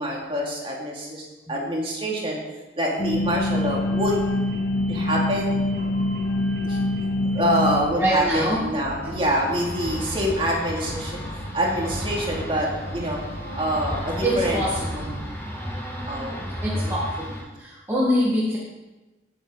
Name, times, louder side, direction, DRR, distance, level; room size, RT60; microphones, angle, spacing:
voice 1, 0.0-2.4 2.8-4.2 4.9-5.5 6.6-6.8 7.3-11.2 11.5-13.2 13.6-14.6 16.1-16.9, equal, 30° right, -3 dB, 2.6 m, -26 dB
sound 1, 3.0-15.2, left 1 dB, 55° left, 2.0 m, -28 dB
voice 2, 8.0-8.7 14.2-15.2 16.6-17.3 17.6-18.6, equal, 15° right, -7 dB, 1.8 m, -24 dB
sound 2, 9.4-17.4, equal, 20° left, 4.3 m, -33 dB
16.5 x 8.0 x 4.0 m, 1.1 s
head